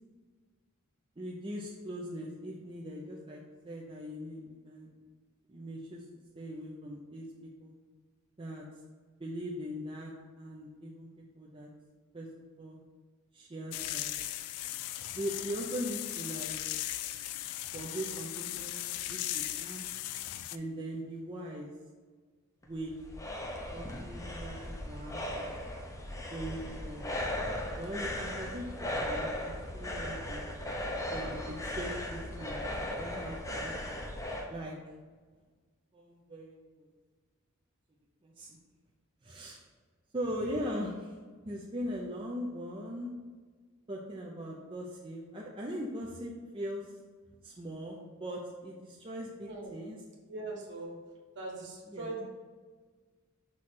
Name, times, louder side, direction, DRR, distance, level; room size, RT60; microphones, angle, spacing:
voice 1, 1.2-4.9 5.5-6.0 6.3-7.7 8.4-8.6 9.2-11.1 11.4-11.7 12.1-12.3 12.6-12.8 13.3-14.1 15.2-16.5 17.7-18.8 19.1-19.9 20.5-21.7 22.6-22.9 23.7-25.5 26.3-27.1 27.8-30.5 31.1-33.7 34.5-34.7 35.9-36.9 38.2-38.6 39.2-39.6 40.1-41.1 41.4-43.1 43.9-46.9 47.4-50.0 51.9-52.1, equal, 25° right, -4 dB, 0.6 m, -40 dB
sound 1, 13.7-20.6, left 13 dB, 85° left, 0.3 m, -37 dB
sound 2, 22.6-34.5, left 1 dB, 15° left, 0.7 m, -37 dB
voice 2, 50.3-50.9 51.3-52.2, right 2 dB, 55° right, -3 dB, 1.6 m, -40 dB
6.0 x 3.2 x 5.7 m, 1.5 s
head